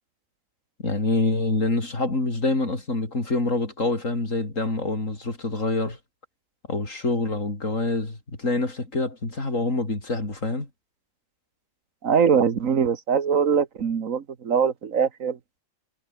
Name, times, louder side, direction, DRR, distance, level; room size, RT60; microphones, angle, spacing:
voice 1, 0.8-6.0 6.7-10.7, left 2 dB, 75° left, 5.0 m, -26 dB
voice 2, 12.0-15.4, right 6 dB, 85° right, 1.8 m, -22 dB
omnidirectional pair, 1.3 m